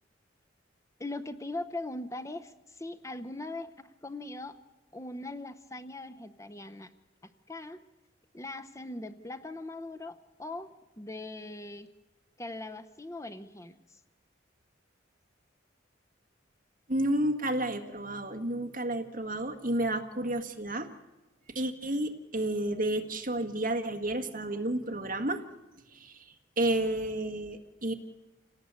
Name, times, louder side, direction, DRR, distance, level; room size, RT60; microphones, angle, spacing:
voice 1, 1.0-4.6 4.9-6.9 7.5-7.8 8.3-11.9 12.4-14.0, left 2 dB, 15° left, 9 dB, 0.7 m, -40 dB
voice 2, 16.9-20.9 21.5-25.4 25.9-27.9, right 1 dB, 45° right, 4 dB, 1.7 m, -31 dB
27.5 x 18.5 x 8.2 m, 1.1 s
head